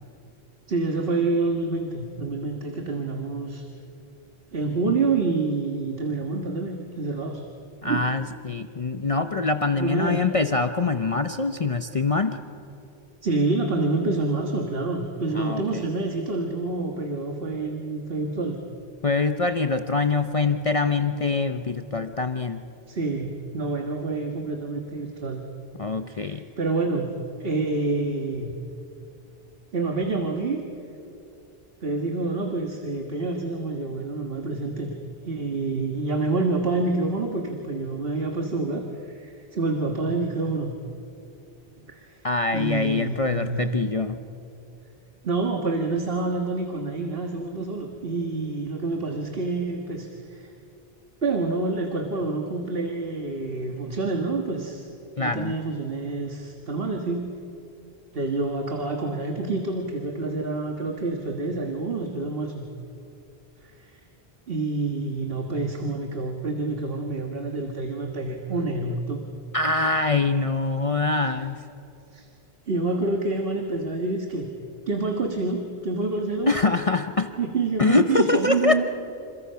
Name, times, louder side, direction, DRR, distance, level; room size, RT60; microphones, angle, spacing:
voice 1, 0.7-3.6 4.5-7.4 7.8-8.0 9.8-10.2 13.2-18.6 22.9-25.4 26.1-27.1 27.4-28.6 29.7-30.6 31.8-34.9 35.2-40.8 41.9-42.2 42.5-43.7 45.2-50.5 51.2-54.9 55.2-57.3 58.1-62.7 63.6-64.0 64.5-69.2 71.3-71.4 72.1-72.3 72.7-74.5 74.9-76.5 77.4-78.8, right 3 dB, 65° right, 3 dB, 1.8 m, -27 dB
voice 2, 7.8-12.4 15.3-15.8 19.0-22.6 25.8-26.4 42.2-44.2 55.2-55.5 69.5-71.6 76.5-77.3 77.8-78.8, left 3 dB, 35° left, 8 dB, 0.8 m, -24 dB
28.0 x 27.5 x 5.7 m, 2.8 s
omnidirectional pair, 1.0 m